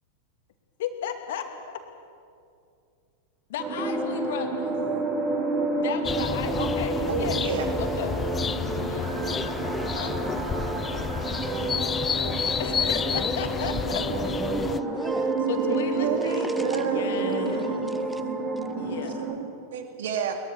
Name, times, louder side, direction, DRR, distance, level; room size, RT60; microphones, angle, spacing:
voice 1, 0.8-1.8 3.5-4.8 5.7-7.5 7.8-8.2 8.7-9.1 10.0-10.1 12.6-14.3 15.0-17.9 18.8-19.3, left 8 dB, 55° left, 6 dB, 2.5 m, -35 dB
sound 1, 3.6-19.3, right 2 dB, 35° right, 5.4 m, -31 dB
sound 2, 3.8-11.0 11.4-14.7 15.0-18.7, right 2 dB, 15° right, 2.7 m, -33 dB
sound 3, 6.0-14.8, left 6 dB, 20° left, 0.6 m, -30 dB
voice 2, 7.1-7.7 15.6-17.8 18.9-20.4, right 7 dB, 60° right, 4 dB, 2.8 m, -31 dB
voice 3, 9.3-10.4 14.3-15.4 16.4-16.9 17.6-18.2, equal, ahead, 9 dB, 1.6 m, -41 dB
21.5 x 21.5 x 7.2 m, 2.4 s
figure-of-eight pair, 90°, 0 cm